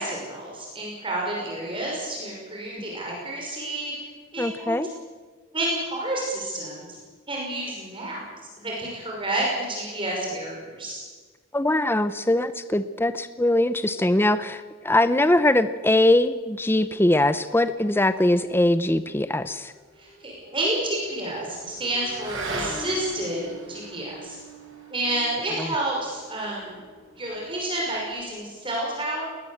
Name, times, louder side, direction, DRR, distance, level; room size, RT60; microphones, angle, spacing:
voice 1, 0.0-3.9 4.3-4.8 5.5-7.0 7.3-8.3 8.6-11.0 20.0-24.4 24.9-26.8 27.2-29.2, right 1 dB, 25° right, -2 dB, 5.6 m, -30 dB
voice 2, 4.4-4.9 11.5-19.7, left 1 dB, 10° left, 12 dB, 0.6 m, -22 dB
Motorcycle / Accelerating revving vroom, 19.5-28.2, right 2 dB, 60° right, 7.0 m, -40 dB
20.5 x 20.0 x 7.9 m, 1.5 s
head